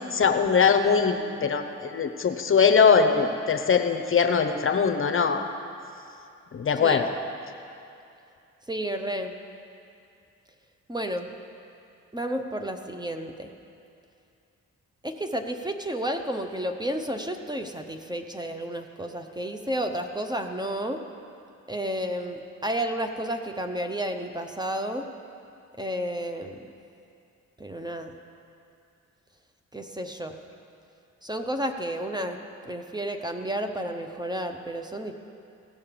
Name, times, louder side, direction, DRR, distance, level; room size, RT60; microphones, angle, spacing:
voice 1, 0.1-5.4 6.5-7.1, left 6 dB, 40° left, 7 dB, 0.8 m, -21 dB
voice 2, 6.8-7.1 8.7-9.3 10.9-11.3 12.1-13.5 15.0-21.0 21.7-25.0 25.8-26.6 27.6-28.2 29.7-30.4 31.2-32.4 32.6-35.1, right 1 dB, 15° right, 5 dB, 0.8 m, -31 dB
16.5 x 5.6 x 6.9 m, 2.6 s
supercardioid pair, 65°, 32 cm